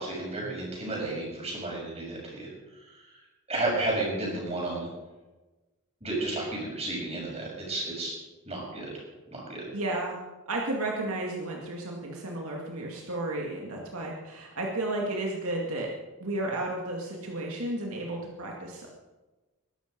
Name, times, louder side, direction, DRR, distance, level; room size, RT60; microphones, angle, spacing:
voice 1, 0.0-2.5 2.8-3.2 3.5-4.9 6.0-8.1 8.5-8.9 9.3-9.6, right 2 dB, 30° right, -3 dB, 6.9 m, -32 dB
voice 2, 9.7-10.2 10.5-15.9 16.2-18.9, right 2 dB, 75° right, -1 dB, 2.2 m, -33 dB
21.5 x 12.0 x 5.3 m, 1.2 s
head